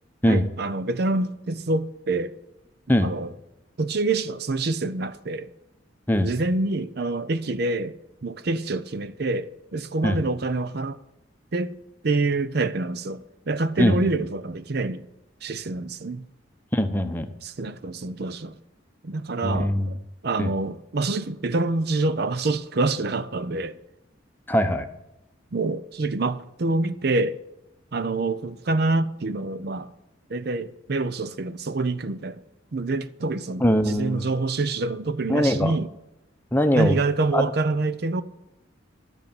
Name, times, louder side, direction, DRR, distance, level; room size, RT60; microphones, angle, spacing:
voice 1, 0.3-2.3 3.0-3.3 3.8-5.5 6.2-11.0 11.5-11.7 12.0-15.0 15.4-16.2 17.4-18.6 19.0-20.0 20.2-23.8 25.5-27.4 27.9-29.9 30.3-32.4 32.7-35.9 36.7-38.2, right 3 dB, 55° right, 0.6 m, -26 dB
voice 2, 13.8-14.1 16.7-17.3 19.4-20.0 20.4-20.5 24.5-24.9 33.6-34.3 35.3-35.7 36.5-37.0 37.3-37.5, equal, 10° left, 0.8 m, -21 dB
12.0 x 8.2 x 7.0 m
head